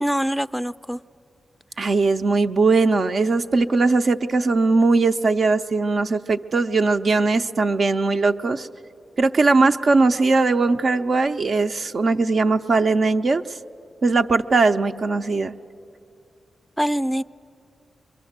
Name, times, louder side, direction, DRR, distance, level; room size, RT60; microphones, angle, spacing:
voice 1, 0.0-1.0 16.8-17.2, equal, ahead, 12 dB, 0.4 m, -24 dB
voice 2, 1.8-8.7 9.2-13.4 14.0-15.5, right 3 dB, 60° right, 7 dB, 0.6 m, -19 dB
23.0 x 22.5 x 7.3 m, 2.7 s
cardioid pair, 60°, 0 cm